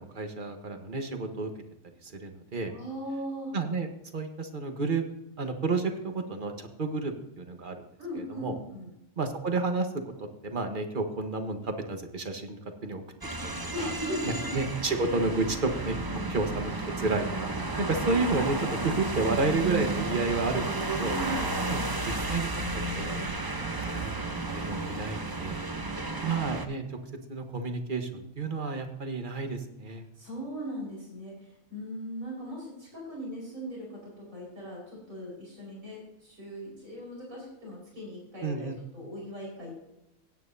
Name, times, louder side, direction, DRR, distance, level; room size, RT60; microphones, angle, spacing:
voice 1, 0.0-1.5 2.0-2.7 3.5-5.0 5.4-7.8 8.2-8.5 9.2-9.9 10.2-13.0 13.4-13.9 14.2-16.0 16.3-16.7 17.0-21.1 21.7-22.5 23.0-23.3 23.9-25.6 26.2-27.0 27.3-30.0 38.4-38.8, right 3 dB, 40° right, 6 dB, 1.4 m, -31 dB
voice 2, 2.7-3.5 8.0-8.9 13.7-14.5 16.1-16.3 21.0-21.5 25.6-26.6 30.1-39.7, equal, 85° right, -3 dB, 5.2 m, -39 dB
sound 1, 13.2-26.7, right 2 dB, 20° right, 0.8 m, -32 dB
16.5 x 9.3 x 2.7 m, 0.86 s
omnidirectional pair, 1.4 m